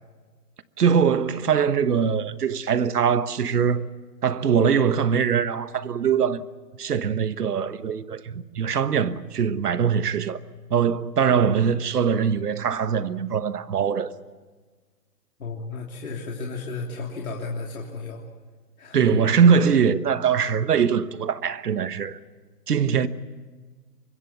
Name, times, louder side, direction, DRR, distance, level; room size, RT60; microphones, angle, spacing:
voice 1, 0.8-3.9 4.2-6.4 6.8-10.4 10.7-14.1 18.9-22.2 22.7-23.1, right 7 dB, 70° right, 1.3 m, -22 dB
voice 2, 15.4-18.2 18.8-19.2, left 4 dB, 60° left, 3.3 m, -33 dB
25.0 x 22.0 x 7.2 m
hypercardioid pair, 175°, 48 cm